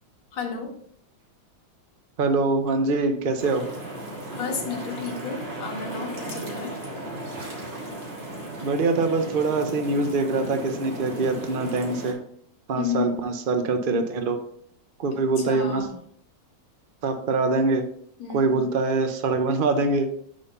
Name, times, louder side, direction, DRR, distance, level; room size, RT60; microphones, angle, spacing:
voice 1, 0.3-0.8 4.3-6.7 12.7-13.2 15.1-16.0 18.2-18.6, left 6 dB, 80° left, 2 dB, 2.0 m, -32 dB
voice 2, 2.2-3.6 8.6-12.2 12.7-14.4 15.0-15.9 17.0-17.8 18.3-20.1, right 3 dB, 75° right, 7 dB, 0.4 m, -24 dB
sound 1, 3.4-12.1, right 1 dB, 35° right, 1.7 m, -35 dB
6.4 x 4.1 x 5.4 m, 0.64 s
omnidirectional pair, 2.0 m